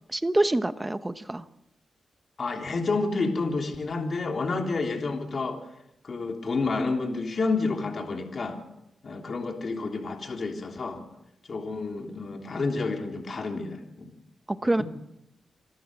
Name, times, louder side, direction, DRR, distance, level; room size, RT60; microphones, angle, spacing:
voice 1, 0.1-1.4 14.5-14.8, right 1 dB, 15° right, 12 dB, 1.0 m, -26 dB
voice 2, 2.4-5.6 6.0-8.6 9.0-11.0 11.5-14.1, left 3 dB, 45° left, 3 dB, 3.3 m, -29 dB
26.5 x 13.0 x 7.8 m, 0.85 s
cardioid pair, 105°, 0 cm